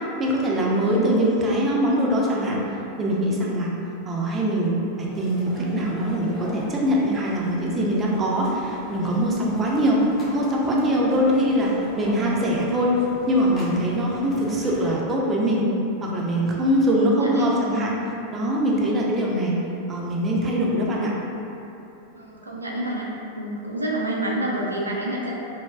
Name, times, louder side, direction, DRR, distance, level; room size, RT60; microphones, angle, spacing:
voice 1, 0.2-2.6 3.0-3.7 4.0-10.0 10.3-11.7 12.0-12.9 13.3-15.7 16.0-17.9 18.3-19.5 19.9-21.1, equal, 20° right, -3 dB, 0.4 m, -22 dB
voice 2, 0.8-1.3 16.8-17.5 22.1-23.1 23.4-25.3, right 1 dB, 80° right, -3 dB, 0.4 m, -28 dB
sound 1, 5.1-15.0, equal, 25° left, 0.6 m, -40 dB
3.3 x 2.1 x 2.2 m, 2.9 s
figure-of-eight pair, 90°, 0 cm